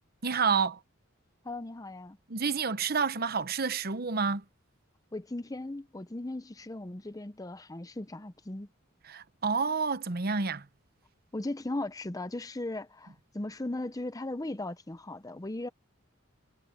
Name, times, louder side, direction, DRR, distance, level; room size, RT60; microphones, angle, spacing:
voice 1, 0.2-0.8 2.3-4.4 9.0-10.7, right 5 dB, 50° right, 0.9 m, -29 dB
voice 2, 1.4-2.2 5.1-8.7 11.3-15.7, left 2 dB, 15° left, 0.7 m, -37 dB
head